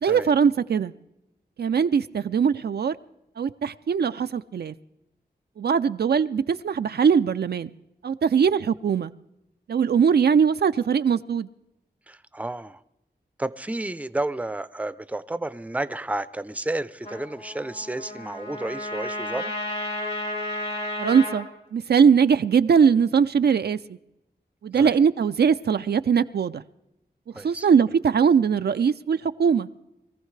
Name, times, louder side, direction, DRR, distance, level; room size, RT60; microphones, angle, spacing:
voice 1, 0.0-0.9 1.6-2.9 3.4-4.7 5.6-7.7 8.0-9.1 9.7-11.5 21.0-23.8 24.6-26.6 27.4-29.7, right 6 dB, 70° right, 0.4 m, -21 dB
voice 2, 12.1-12.8 13.4-19.5 24.7-25.0 27.3-27.7, right 2 dB, 10° right, 0.5 m, -31 dB
Trumpet, 17.0-21.4, left 1 dB, 85° left, 4.7 m, -32 dB
23.0 x 14.5 x 3.2 m
cardioid pair, 45°, 17 cm